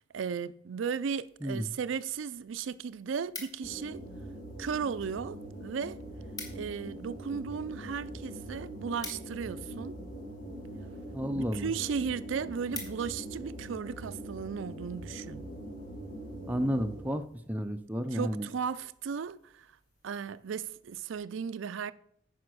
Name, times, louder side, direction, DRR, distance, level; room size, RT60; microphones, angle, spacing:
voice 1, 0.1-4.0 4.6-6.0 6.5-10.0 11.3-15.5 18.1-19.7 20.0-21.9, right 6 dB, 85° right, 0.4 m, -35 dB
sound 1, 2.9-3.9 4.6-5.2 5.5-5.6 5.8-5.9 6.2-6.8 7.1-10.0 10.7-11.0 11.5-11.6 12.0-12.1 12.4-13.4 13.8-14.1, left 2 dB, 20° left, 1.7 m, -45 dB
sound 2, 3.6-17.3, right 1 dB, 45° left, 1.7 m, -43 dB
voice 2, 11.1-11.7 16.5-18.5, equal, 10° right, 0.5 m, -32 dB
9.5 x 5.0 x 6.2 m
head